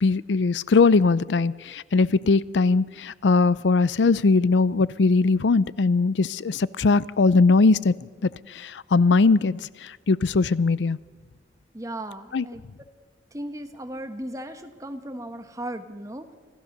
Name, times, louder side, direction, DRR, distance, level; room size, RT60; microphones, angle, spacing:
voice 1, 0.0-11.0 12.3-12.4, left 4 dB, 90° left, 20 dB, 0.5 m, -20 dB
voice 2, 11.7-12.6 13.3-16.3, right 1 dB, 20° right, 7 dB, 1.3 m, -36 dB
26.0 x 15.5 x 6.7 m, 1.4 s
head